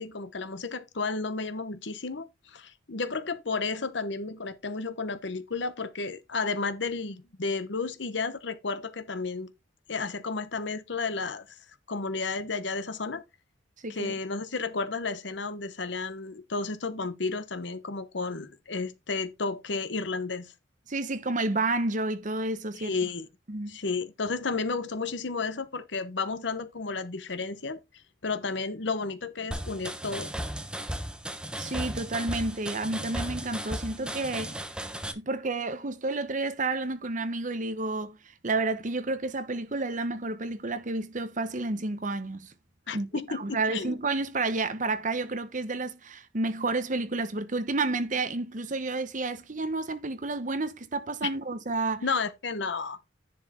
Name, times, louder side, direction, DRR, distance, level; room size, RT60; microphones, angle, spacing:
voice 1, 0.0-9.5 9.9-11.6 11.9-13.2 13.9-20.5 22.8-23.3 23.7-27.8 28.2-30.3 42.9-44.0 51.2-51.3 52.0-53.0, left 4 dB, 65° left, 0.9 m, -32 dB
voice 2, 13.8-14.1 20.9-22.9 23.5-23.8 31.6-34.6 35.1-38.2 38.4-42.5 42.9-52.0, right 3 dB, 45° right, 1.0 m, -30 dB
sound 1, 29.5-35.1, right 1 dB, 5° right, 0.9 m, -35 dB
10.5 x 4.5 x 4.2 m
head